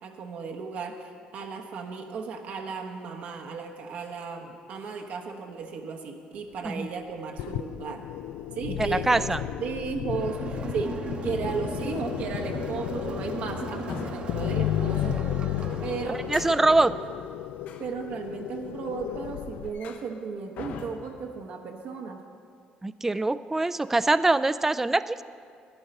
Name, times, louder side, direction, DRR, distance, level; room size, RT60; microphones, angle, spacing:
voice 1, 0.0-8.1 8.5-10.9 11.2-15.2 15.8-16.2 17.8-22.2, right 5 dB, 70° right, 2 dB, 1.0 m, -35 dB
sound 1, 3.9-4.1 4.8-5.0 7.6-7.8 9.9-10.1 10.6-10.8 11.3-11.6 11.9-12.9 13.1-13.5 13.9-19.2 19.5-20.2 20.6-21.2, left 6 dB, 65° left, 0.9 m, -43 dB
sound 2, 7.4-19.7, left 12 dB, 90° left, 0.3 m, -33 dB
voice 2, 8.7-9.4 16.1-16.9 22.8-25.2, right 2 dB, 10° right, 14 dB, 0.3 m, -24 dB
Crowd, 10.1-16.4, right 4 dB, 40° right, 0.8 m, -38 dB
11.5 x 10.0 x 5.3 m, 2.2 s
cardioid pair, 105°, 3 cm